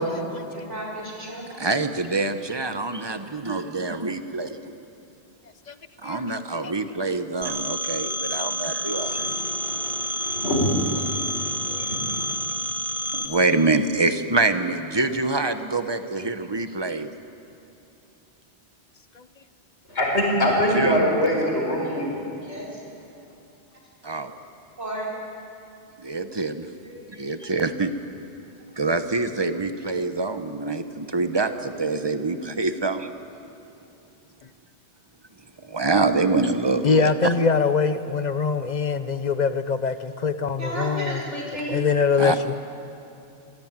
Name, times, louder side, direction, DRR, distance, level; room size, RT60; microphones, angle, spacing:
voice 1, 0.5-1.4 11.6-11.8 12.9-13.2 16.2-16.3 22.4-22.7 24.1-24.2 24.8-25.1 26.8-27.3 40.6-41.8, right 1 dB, 85° right, -3 dB, 5.3 m, -34 dB
voice 2, 1.6-4.6 6.0-9.3 13.1-17.1 20.7-21.0 24.0-24.3 26.0-26.7 27.2-27.9 28.8-33.1 35.6-37.3 42.2-42.4, right 3 dB, 25° right, 9 dB, 1.0 m, -25 dB
Telephone, 7.4-13.3, equal, ahead, 1.7 m, -29 dB
voice 3, 8.9-12.4 19.9-22.2, equal, 75° left, -1 dB, 5.1 m, -25 dB
voice 4, 36.8-41.2 41.7-42.5, left 5 dB, 40° left, 11 dB, 1.0 m, -23 dB
25.0 x 17.0 x 9.0 m, 2.7 s
omnidirectional pair, 1.2 m